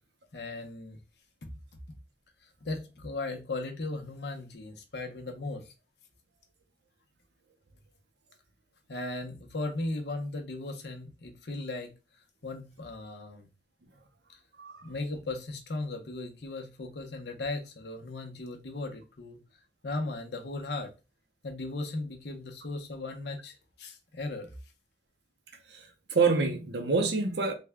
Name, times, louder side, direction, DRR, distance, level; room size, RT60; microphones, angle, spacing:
voice 1, 0.3-1.0 2.4-5.7 8.9-11.9 12.4-13.5 14.8-19.4 19.8-20.9 21.4-24.5, left 2 dB, 70° left, 0.7 m, -37 dB
voice 2, 25.7-27.5, right 4 dB, 70° right, 0.6 m, -27 dB
3.4 x 2.2 x 3.4 m
head